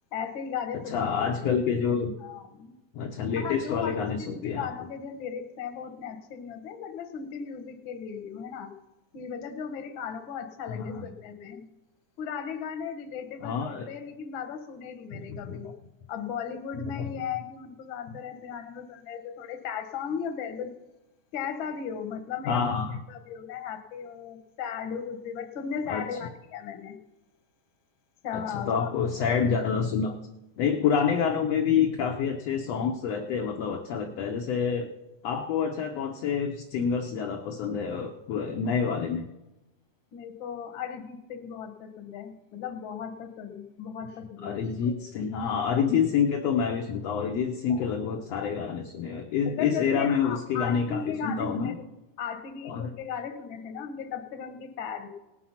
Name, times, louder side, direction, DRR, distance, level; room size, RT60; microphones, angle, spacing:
voice 1, 0.1-1.5 2.2-2.7 3.4-8.7 9.1-11.7 12.2-15.7 16.1-20.8 21.3-22.8 23.1-27.0 28.2-28.9 31.0-31.1 40.1-45.0 45.3-45.6 47.7-47.8 49.4-51.9 52.2-55.1, left 7 dB, 60° left, 8 dB, 1.4 m, -36 dB
voice 2, 0.9-2.1 2.9-4.7 10.7-11.1 13.4-13.9 15.1-15.6 17.0-17.1 22.5-22.9 25.9-26.0 28.3-30.2 30.6-34.9 35.2-39.3 44.4-51.8 52.6-52.9, left 6 dB, 75° left, 3 dB, 1.5 m, -27 dB
18.0 x 7.5 x 5.7 m, 1.0 s
omnidirectional pair, 3.8 m